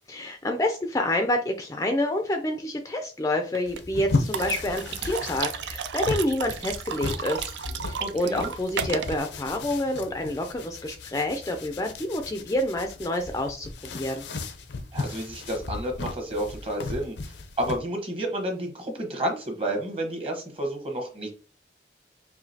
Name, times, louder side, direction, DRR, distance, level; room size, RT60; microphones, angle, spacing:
voice 1, 0.1-7.5 7.9-14.2, left 1 dB, 20° left, 5 dB, 0.4 m, -28 dB
sound 1, 3.5-3.8 4.3-9.2, right 7 dB, 80° right, 0.4 m, -33 dB
sound 2, 3.6-17.8, left 3 dB, 75° left, 0.5 m, -35 dB
voice 2, 8.0-8.5 14.9-21.3, right 1 dB, 30° right, 1 dB, 1.1 m, -31 dB
4.9 x 2.8 x 2.7 m, 0.37 s
head